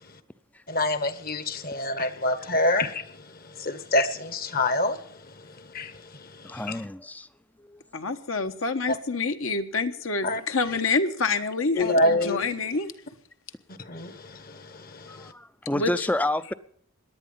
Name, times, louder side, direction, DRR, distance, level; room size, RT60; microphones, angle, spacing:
voice 1, 0.7-3.0 3.6-5.0 5.7-5.9 6.7-6.8 10.2-10.4 11.7-12.5 13.9-14.1, left 1 dB, 40° left, 1.2 m, -25 dB
voice 2, 6.4-7.3 7.6-7.8 15.1-16.5, left 1 dB, 5° left, 0.5 m, -29 dB
voice 3, 7.9-12.9 15.7-15.9, left 4 dB, 65° left, 1.3 m, -27 dB
18.5 x 11.0 x 5.6 m
head